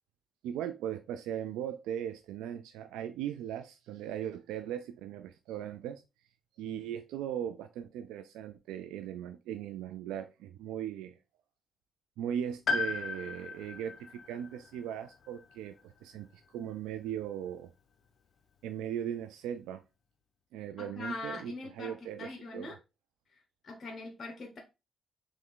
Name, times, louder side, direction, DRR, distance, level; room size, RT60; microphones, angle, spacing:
voice 1, 0.4-6.0 6.6-11.2 12.2-17.7 18.6-19.8 20.5-22.7, right 10 dB, 90° right, 0.3 m, -38 dB
Piano, 12.7-16.5 16.8-16.9 18.0-18.1, left 4 dB, 60° left, 0.6 m, -37 dB
voice 2, 20.8-22.8 23.3-24.6, left 3 dB, 45° left, 1.1 m, -42 dB
3.6 x 3.2 x 3.6 m
supercardioid pair, 65°, 0 cm